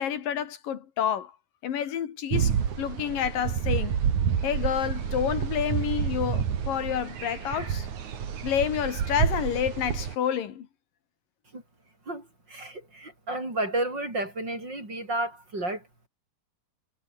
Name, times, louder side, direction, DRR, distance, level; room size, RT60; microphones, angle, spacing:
voice 1, 0.0-1.3 1.6-3.9 4.4-7.9 8.4-10.7, left 9 dB, 80° left, 3.7 m, -29 dB
sound 1, 2.3-10.2, right 8 dB, 60° right, 3.7 m, -29 dB
voice 2, 12.1-16.1, right 2 dB, 30° right, 8.8 m, -32 dB
omnidirectional pair, 4.0 m